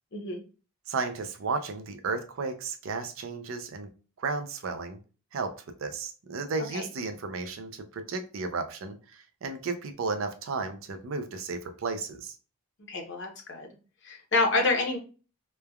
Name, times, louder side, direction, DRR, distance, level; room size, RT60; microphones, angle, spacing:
voice 1, 0.1-0.4 6.7-6.8 12.9-13.7 14.0-15.0, left 3 dB, 55° left, 2 dB, 0.7 m, -27 dB
voice 2, 0.9-3.9 4.2-5.0 5.3-5.5 5.8-12.4, right 4 dB, 70° right, 7 dB, 0.4 m, -33 dB
3.1 x 2.2 x 2.3 m, 0.35 s
head